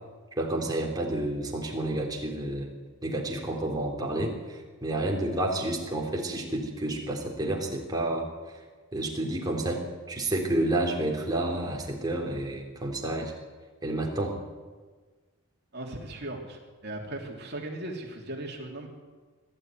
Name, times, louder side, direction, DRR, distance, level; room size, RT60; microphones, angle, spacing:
voice 1, 0.4-2.7 3.0-8.3 8.9-13.3 13.8-14.4, right 1 dB, 20° right, -1 dB, 3.6 m, -30 dB
voice 2, 15.7-18.9, right 1 dB, 50° right, 1 dB, 3.3 m, -38 dB
21.0 x 13.5 x 9.4 m, 1.4 s
head